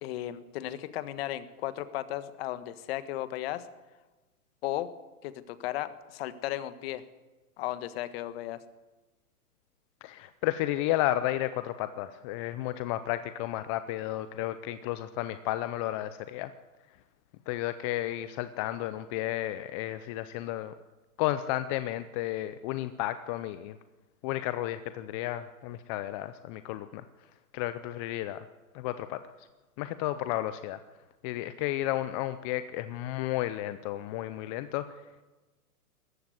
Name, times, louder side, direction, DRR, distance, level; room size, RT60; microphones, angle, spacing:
voice 1, 0.0-3.7 4.6-4.9 5.2-7.0 7.6-8.6, left 14 dB, 40° left, 13 dB, 1.5 m, -35 dB
voice 2, 10.0-16.5 17.5-20.7 21.2-23.8 24.2-27.0 27.5-28.4 28.7-29.5 29.8-30.8 31.2-35.0, left 14 dB, 20° left, 12 dB, 0.6 m, -32 dB
19.5 x 14.5 x 9.6 m, 1.2 s
hypercardioid pair, 125°, 45 cm